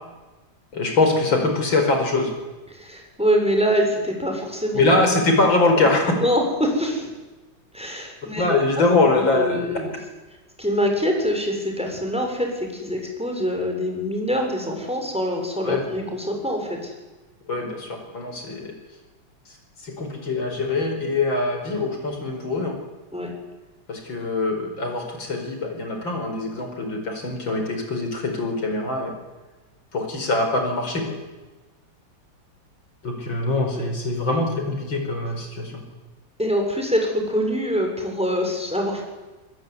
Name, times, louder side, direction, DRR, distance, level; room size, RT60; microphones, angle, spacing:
voice 1, 0.7-2.3 4.7-6.1 8.4-9.6 15.6-15.8 17.5-18.7 19.8-22.8 23.9-29.1 29.9-31.2 33.0-35.8, left 2 dB, 80° left, 4 dB, 5.7 m, -23 dB
voice 2, 2.7-4.8 5.7-5.8 6.2-7.1 7.7-8.6 9.3-9.9 10.6-16.9 23.1-23.3 33.7-33.9 36.4-39.0, equal, 5° right, 2 dB, 6.7 m, -24 dB
24.5 x 21.0 x 9.9 m, 1.2 s
omnidirectional pair, 2.1 m